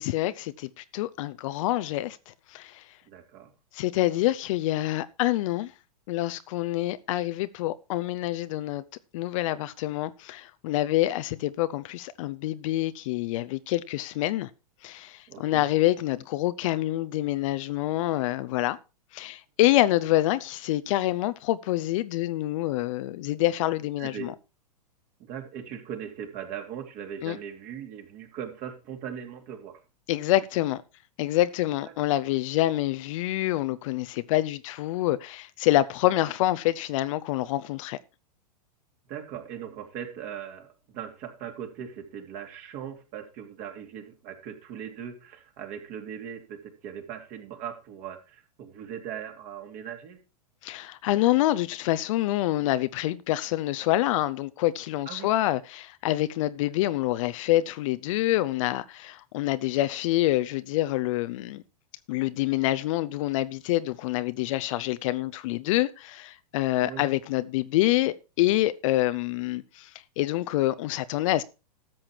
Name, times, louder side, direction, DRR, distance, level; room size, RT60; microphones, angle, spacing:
voice 1, 0.0-2.8 3.7-5.7 6.1-8.8 9.1-14.5 14.8-18.8 19.1-24.3 27.2-27.4 30.1-30.8 31.2-38.0 50.6-61.6 62.1-69.9 70.2-71.4, left 15 dB, 50° left, 0.7 m, -26 dB
voice 2, 3.0-3.5 15.3-15.7 24.0-24.3 25.2-29.8 32.1-32.2 39.1-50.2 52.6-52.7 55.1-55.4 66.8-67.0, right 9 dB, 40° right, 2.9 m, -39 dB
13.0 x 7.3 x 4.6 m
hypercardioid pair, 110°, 21 cm